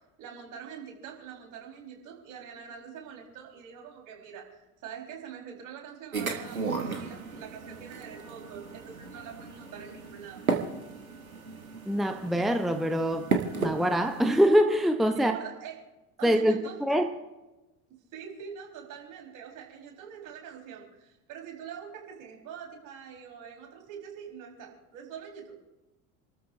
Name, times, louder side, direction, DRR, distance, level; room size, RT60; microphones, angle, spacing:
voice 1, 0.2-10.4 15.1-15.8 16.2-16.8 18.1-25.6, right 7 dB, 50° right, 4.7 m, -44 dB
sound 1, 6.1-14.4, right 4 dB, 90° right, 1.3 m, -35 dB
voice 2, 11.9-13.3 13.6-15.4 16.2-17.1, equal, ahead, 0.8 m, -24 dB
29.0 x 13.0 x 2.7 m
figure-of-eight pair, 65°, 41 cm